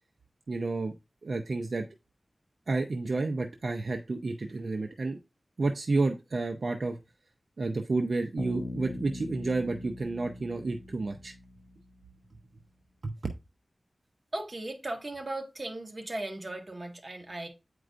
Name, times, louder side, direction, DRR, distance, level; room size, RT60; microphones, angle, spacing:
voice 1, 0.5-0.9 1.2-1.8 2.7-5.2 5.6-7.0 7.6-11.3 13.0-13.1, right 3 dB, 80° right, 0.6 m, -30 dB
Bass guitar, 8.4-12.1, left 2 dB, 75° left, 1.0 m, -41 dB
voice 2, 14.3-17.5, right 1 dB, 50° right, 1.7 m, -37 dB
9.0 x 4.7 x 2.5 m
wide cardioid pair, 55°, 0 cm